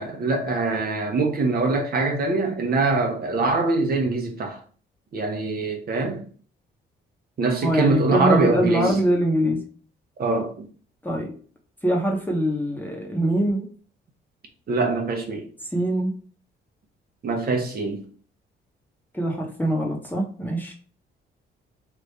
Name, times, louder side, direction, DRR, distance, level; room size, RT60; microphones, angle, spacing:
voice 1, 0.0-4.6 5.1-6.2 7.4-9.0 10.2-10.7 14.7-15.5 17.2-18.0, right 3 dB, 50° right, 0.9 m, -23 dB
voice 2, 7.6-9.6 11.0-11.3 11.8-13.7 15.7-16.1 19.1-20.7, right 1 dB, 10° left, 0.9 m, -23 dB
3.2 x 2.5 x 3.2 m
cardioid pair, 90°, 20 cm